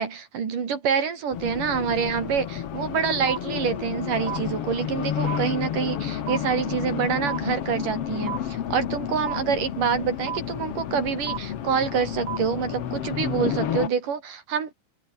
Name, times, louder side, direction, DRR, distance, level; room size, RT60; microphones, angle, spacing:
voice 1, 0.0-14.7, right 6 dB, 75° right, 4.9 m, -26 dB
Race car auto racing, 1.3-13.9, left 10 dB, 55° left, 2.1 m, -31 dB
sound 1, 3.3-3.4 4.3-4.4 5.3-5.4 6.3-6.4 7.3-7.4 8.3-8.4 9.3-9.4 10.3-10.4 11.3-11.4 12.3-12.4, right 10 dB, 60° right, 2.4 m, -30 dB
omnidirectional pair, 3.7 m